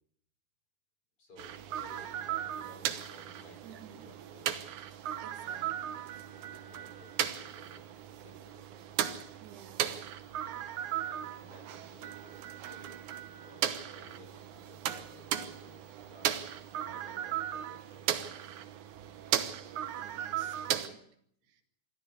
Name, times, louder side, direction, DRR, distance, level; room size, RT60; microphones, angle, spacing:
voice 1, 1.2-4.5 5.4-5.8 6.5-8.7 11.0-12.4 12.7-16.3 16.8-18.1, left 1 dB, 35° left, 3 dB, 6.4 m, -57 dB
sound 1, 1.4-20.9, right 11 dB, 65° right, 2.2 m, -37 dB
voice 2, 3.6-4.1 5.2-6.0 9.4-10.1 20.0-21.0 21.5-21.6, right 8 dB, 85° right, 7 dB, 3.9 m, -54 dB
24.5 x 14.5 x 8.1 m, 0.66 s
omnidirectional pair, 4.5 m